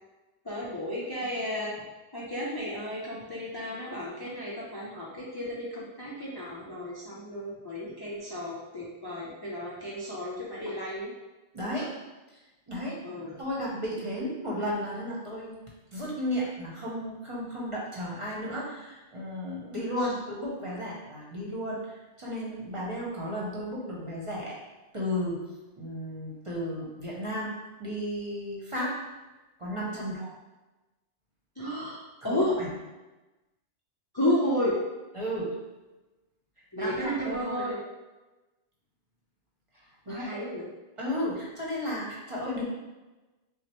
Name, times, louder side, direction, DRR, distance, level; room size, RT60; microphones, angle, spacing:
voice 1, 0.4-1.7 2.1-11.1 13.0-13.4 30.0-30.2 31.6-32.5 34.1-34.7 36.7-37.8 40.1-40.7, equal, 30° left, -6 dB, 0.5 m, -32 dB
voice 2, 11.5-12.0 12.7-13.0 13.4-15.6 15.9-24.6 24.9-25.5 25.8-29.0 29.6-30.3 32.2-32.7 35.1-35.6 36.8-37.7 40.0-40.5 41.0-42.6, equal, 30° right, -5 dB, 0.9 m, -34 dB
6.1 x 2.1 x 3.0 m, 1.1 s
omnidirectional pair, 1.1 m